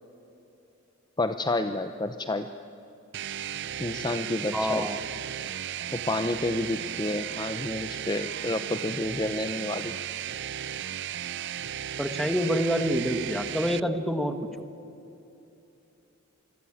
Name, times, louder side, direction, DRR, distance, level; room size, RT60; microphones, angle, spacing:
voice 1, 1.2-2.5 3.8-4.9 5.9-9.9, left 2 dB, 20° left, 8 dB, 0.8 m, -30 dB
sound 1, 3.1-13.8, right 10 dB, 60° right, 0.5 m, -35 dB
voice 2, 4.5-5.0 12.0-14.4, equal, ahead, 8 dB, 1.6 m, -27 dB
27.5 x 22.5 x 8.7 m, 2.9 s
head